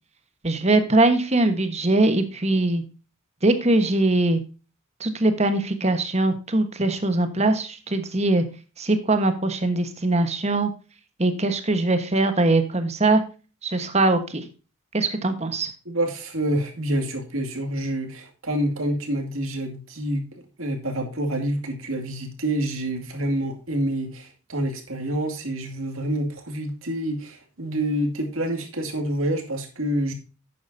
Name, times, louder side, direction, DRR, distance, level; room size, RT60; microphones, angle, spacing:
voice 1, 0.4-2.8 3.4-4.4 5.0-8.4 8.8-10.7 11.2-13.2 13.6-14.4 14.9-15.7, right 2 dB, 30° right, 1.3 m, -21 dB
voice 2, 15.9-20.2 20.6-30.1, right 1 dB, 75° right, 2.3 m, -27 dB
11.0 x 8.8 x 2.7 m
head